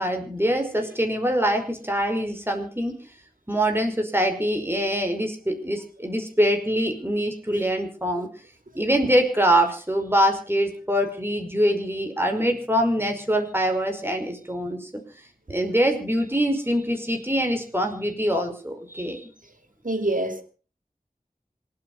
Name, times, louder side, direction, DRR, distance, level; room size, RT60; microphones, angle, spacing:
voice 1, 0.0-3.0 3.5-8.3 8.7-14.9 15.5-19.2, equal, 15° right, 5.4 m, -24 dB
voice 2, 19.8-20.4, right 1 dB, 65° right, 2.7 m, -25 dB
26.5 x 9.0 x 5.8 m
wide cardioid pair, 45°, 15 cm